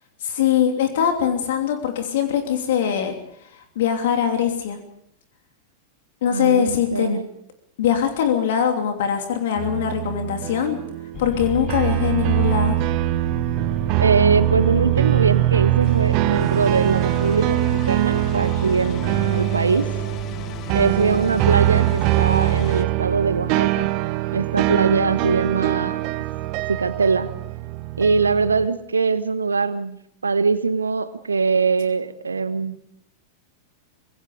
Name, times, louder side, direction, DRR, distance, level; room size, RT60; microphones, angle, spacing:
voice 1, 0.2-3.1 3.7-4.8 6.2-7.2 7.8-10.8 11.2-12.8, left 9 dB, 55° left, 5 dB, 2.9 m, -22 dB
voice 2, 6.3-7.2 14.0-19.9 20.7-23.9 24.3-26.0 26.7-27.3 28.0-32.8, right 4 dB, 75° right, 13 dB, 1.3 m, -22 dB
sound 1, 9.6-28.7, right 16 dB, 45° right, 1.1 m, -22 dB
sound 2, 11.1-22.8, left 11 dB, 35° left, 1.2 m, -36 dB
26.0 x 21.0 x 5.1 m, 0.72 s
figure-of-eight pair, 90°, 0 cm